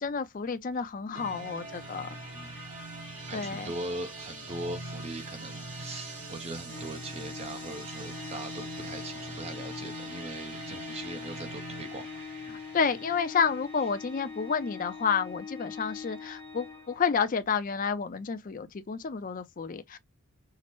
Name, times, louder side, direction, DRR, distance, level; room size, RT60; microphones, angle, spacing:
voice 1, 0.0-2.1 3.3-3.7 12.5-20.0, left 6 dB, 35° left, 0.4 m, -30 dB
sound 1, 1.1-14.9, right 2 dB, 90° right, 2.3 m, -43 dB
voice 2, 3.2-12.1 12.5-12.6, right 2 dB, 30° right, 0.5 m, -40 dB
Organ, 6.7-17.4, left 5 dB, 20° left, 0.8 m, -43 dB
5.7 x 2.0 x 3.0 m
head